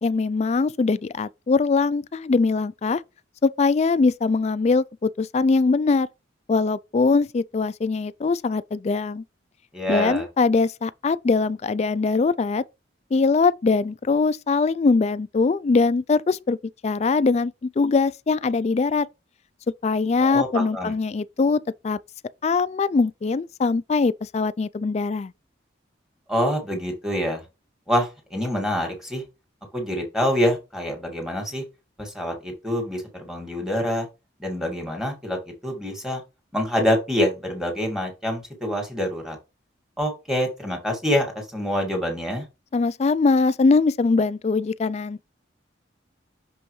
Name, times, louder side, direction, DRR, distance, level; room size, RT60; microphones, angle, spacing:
voice 1, 0.0-3.0 3.4-6.1 6.5-9.2 9.9-12.6 13.1-16.6 16.8-19.1 19.8-22.0 22.4-25.3 42.7-45.2, left 4 dB, 35° left, 0.3 m, -22 dB
voice 2, 9.7-10.3 20.2-20.9 26.3-27.4 27.9-29.2 29.7-31.6 32.0-34.1 34.4-35.4 35.6-36.2 36.5-39.4 40.0-42.4, equal, 5° right, 2.0 m, -26 dB
6.2 x 5.4 x 3.1 m
head